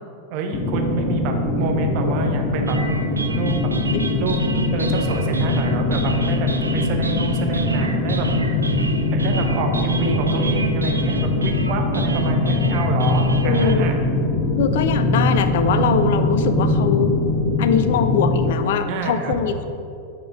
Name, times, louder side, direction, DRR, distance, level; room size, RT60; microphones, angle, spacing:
voice 1, 0.3-2.8 3.3-3.7 4.1-4.4 4.7-8.3 9.1-14.0 18.9-19.3, right 4 dB, 45° right, 3 dB, 0.8 m, -27 dB
sound 1, 0.5-18.5, left 2 dB, 30° left, 0.8 m, -22 dB
sound 2, 2.7-13.7, right 3 dB, 80° right, 0.3 m, -29 dB
voice 2, 10.0-10.4 13.4-13.9 14.6-17.1 17.6-19.7, left 7 dB, 55° left, 10 dB, 0.4 m, -22 dB
7.7 x 5.1 x 3.5 m, 2.6 s
figure-of-eight pair, 90°, 0 cm